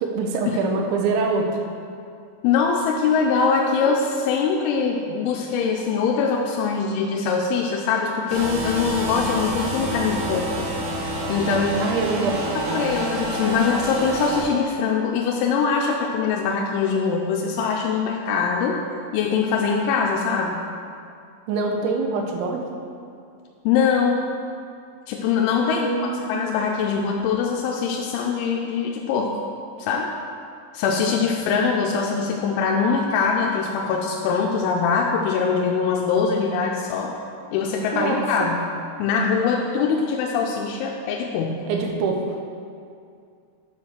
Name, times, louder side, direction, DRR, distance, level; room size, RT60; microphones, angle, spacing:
voice 1, 0.0-1.6 11.8-12.8 21.5-22.6 25.6-26.3 37.9-38.5 41.7-42.5, right 4 dB, 80° right, 2 dB, 3.2 m, -25 dB
voice 2, 2.4-10.7 11.3-11.8 12.5-18.8 19.1-20.6 23.6-24.2 25.1-29.4 29.8-30.1 30.7-37.1 37.5-38.6 39.0-41.7, left 5 dB, 90° left, 0 dB, 3.0 m, -23 dB
sound 1, 8.3-14.4, right 1 dB, 60° right, 4.4 m, -28 dB
9.4 x 4.5 x 6.4 m, 2.4 s
omnidirectional pair, 5.3 m